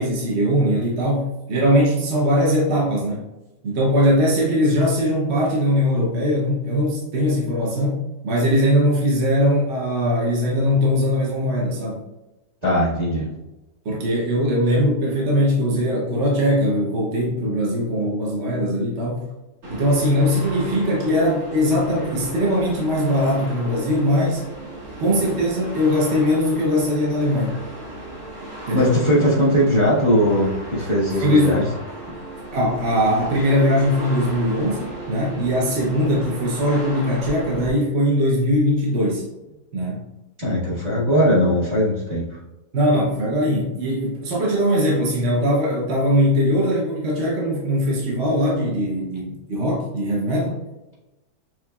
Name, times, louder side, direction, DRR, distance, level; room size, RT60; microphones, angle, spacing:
voice 1, 0.0-3.2 3.6-12.0 13.8-19.2 19.7-24.4 25.0-27.6 28.7-29.0 31.2-31.6 32.5-39.3 39.7-40.0 42.7-50.6, equal, 50° right, -4 dB, 1.0 m, -20 dB
voice 2, 12.6-13.3 28.7-31.6 32.1-32.2 40.4-42.2, equal, 25° right, -8 dB, 1.4 m, -19 dB
sound 1, 19.6-37.7, right 1 dB, 65° right, 2.0 m, -35 dB
6.2 x 3.1 x 2.3 m, 1.0 s
omnidirectional pair, 1.7 m